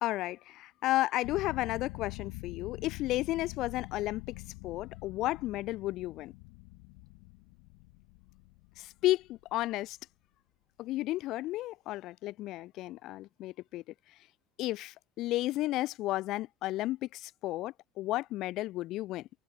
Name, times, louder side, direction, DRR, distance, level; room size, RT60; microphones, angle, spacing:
voice 1, 0.0-4.2 4.6-6.3 8.8-10.0 10.8-13.8 14.6-19.2, left 16 dB, 65° left, 1.3 m, -33 dB
sound 1, 1.2-9.6, left 40 dB or more, 85° left, 4.7 m, -46 dB
cardioid pair, 110°, 0 cm